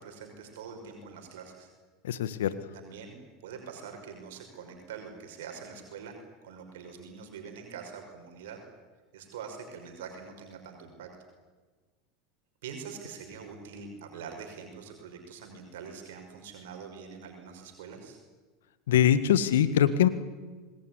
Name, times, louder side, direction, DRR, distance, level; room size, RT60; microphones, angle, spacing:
voice 1, 0.0-1.7 2.7-6.2 6.4-8.6 9.1-11.1 12.6-18.2, right 6 dB, 70° right, 3 dB, 5.7 m, -44 dB
voice 2, 2.0-2.5 18.9-20.1, left 10 dB, 75° left, 13 dB, 1.7 m, -23 dB
25.5 x 20.5 x 9.9 m, 1.3 s
hypercardioid pair, 80°, 0 cm